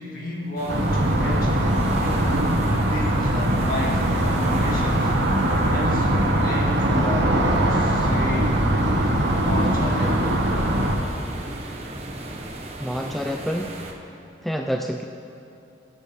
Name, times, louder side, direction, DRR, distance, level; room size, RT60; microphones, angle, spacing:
voice 1, 0.0-1.6 2.5-5.2 5.7-6.1 6.4-7.4 7.7-8.6 9.4-10.5, left 1 dB, 50° left, -4 dB, 2.4 m, -32 dB
sound 1, 0.6-13.9, right 1 dB, 35° right, 1.2 m, -37 dB
sound 2, 0.7-11.0, right 1 dB, 75° right, 1.8 m, -21 dB
voice 2, 12.8-13.8 14.4-15.0, equal, ahead, 3 dB, 0.4 m, -28 dB
23.0 x 9.1 x 3.6 m, 2.8 s
head